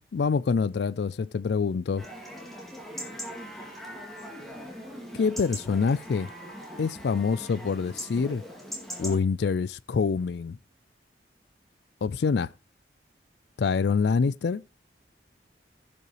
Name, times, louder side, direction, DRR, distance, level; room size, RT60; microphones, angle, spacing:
voice 1, 0.0-2.1 5.1-6.3 6.8-8.4 9.0-10.6 12.0-12.5 13.6-14.6, left 5 dB, 65° left, 0.4 m, -26 dB
Chatter / Livestock farm animals working animals / Chirp tweet, 2.0-9.2, equal, ahead, 2.0 m, -40 dB
16.0 x 5.5 x 3.1 m
head